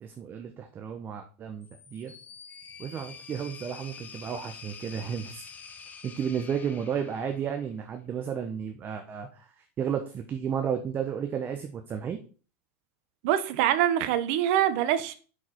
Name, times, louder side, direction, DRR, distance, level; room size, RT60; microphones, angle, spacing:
voice 1, 0.0-2.1 2.8-5.4 6.0-12.2, right 7 dB, 25° right, 0.8 m, -33 dB
sound 1, 1.6-7.8, left 6 dB, 20° left, 0.9 m, -47 dB
voice 2, 13.2-15.2, right 11 dB, 60° right, 0.9 m, -24 dB
6.3 x 4.9 x 4.4 m
supercardioid pair, 135°, 7 cm